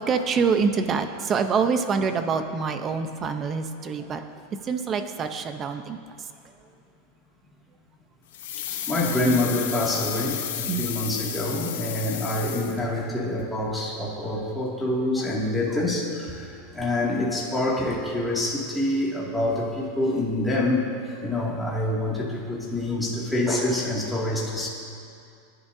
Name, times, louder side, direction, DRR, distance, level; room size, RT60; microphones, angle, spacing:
voice 1, 0.0-4.2 4.6-6.0 10.7-10.9 21.2-21.5, right 5 dB, 25° right, 8 dB, 0.8 m, -26 dB
sound 1, 8.3-13.1 13.4-13.5, left 10 dB, 90° left, 1.0 m, -33 dB
voice 2, 8.7-20.9 21.2-24.7, left 1 dB, 5° left, -6 dB, 2.4 m, -26 dB
29.0 x 11.0 x 2.8 m, 2.4 s
supercardioid pair, 160°, 0 cm